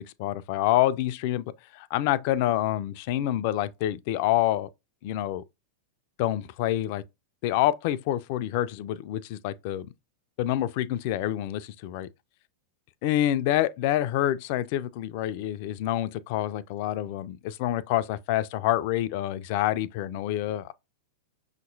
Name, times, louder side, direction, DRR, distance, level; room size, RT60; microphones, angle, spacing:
voice 1, 0.0-4.7 5.0-5.4 6.2-7.0 7.4-9.9 10.4-12.1 13.0-20.7, left 13 dB, 50° left, 0.4 m, -27 dB
5.7 x 2.9 x 2.6 m
hypercardioid pair, 95°, 0 cm